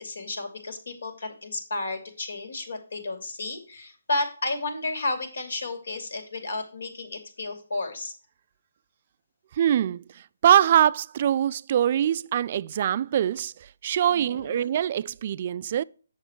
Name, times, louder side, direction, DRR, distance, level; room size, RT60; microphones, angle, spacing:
voice 1, 0.0-8.1 14.1-14.7, left 2 dB, 70° left, 2.6 m, -32 dB
voice 2, 9.6-10.0 10.4-13.5 13.8-15.8, right 10 dB, 40° right, 0.3 m, -23 dB
8.1 x 6.6 x 4.5 m
hypercardioid pair, 155°, 0 cm